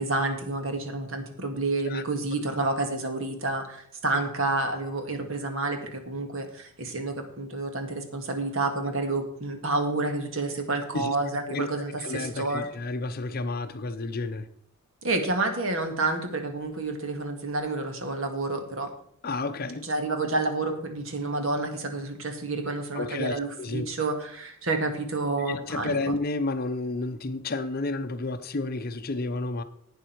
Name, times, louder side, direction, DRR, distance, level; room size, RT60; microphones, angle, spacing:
voice 1, 0.0-12.7 15.0-18.9 19.8-26.1, right 2 dB, 65° right, 1.9 m, -29 dB
voice 2, 12.0-14.5 19.2-19.8 22.9-23.9 25.5-29.6, left 3 dB, 45° left, 0.7 m, -31 dB
11.5 x 8.9 x 4.6 m
head